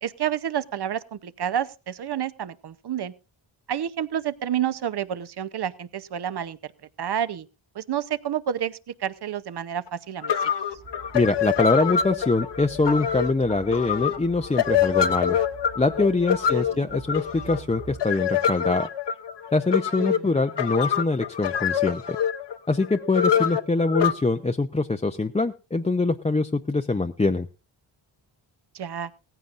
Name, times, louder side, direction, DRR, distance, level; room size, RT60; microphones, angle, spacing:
voice 1, 0.0-3.1 3.7-6.7 7.0-7.5 7.7-10.3 16.5-16.9 20.0-20.3 28.7-29.1, right 10 dB, 55° right, 15 dB, 0.8 m, -29 dB
sound 1, 9.9-10.0 10.2-24.1, left 8 dB, 60° left, 1.0 m, -25 dB
sound 2, 10.7-18.0, right 4 dB, 75° right, 2.9 m, -46 dB
voice 2, 11.1-15.4 15.8-18.9 19.5-22.2 22.7-27.5, left 3 dB, 15° left, 6 dB, 0.5 m, -24 dB
17.0 x 15.0 x 2.5 m, 0.30 s
cardioid pair, 70°, 48 cm